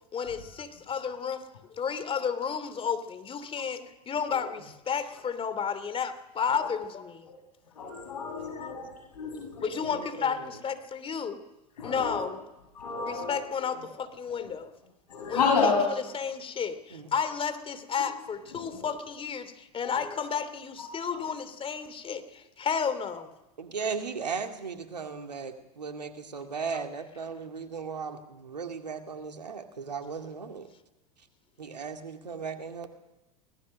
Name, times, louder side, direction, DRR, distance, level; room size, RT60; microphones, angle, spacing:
voice 1, 0.1-1.4 1.7-7.3 8.6-8.8 9.6-11.4 11.8-12.4 13.0-14.7 15.3-15.7 16.1-23.3, left 6 dB, 25° left, 11 dB, 2.8 m, -32 dB
voice 2, 7.7-9.7 11.8-12.2 12.7-13.4 15.1-15.8 18.7-18.9 19.8-20.1 20.8-21.2, left 5 dB, 80° left, 1 dB, 6.8 m, -30 dB
voice 3, 9.7-10.5 13.7-13.9 16.9-17.1 23.6-30.7 31.6-32.9, right 5 dB, 90° right, 6 dB, 2.4 m, -37 dB
24.0 x 18.5 x 6.5 m, 0.98 s
hypercardioid pair, 85°, 20 cm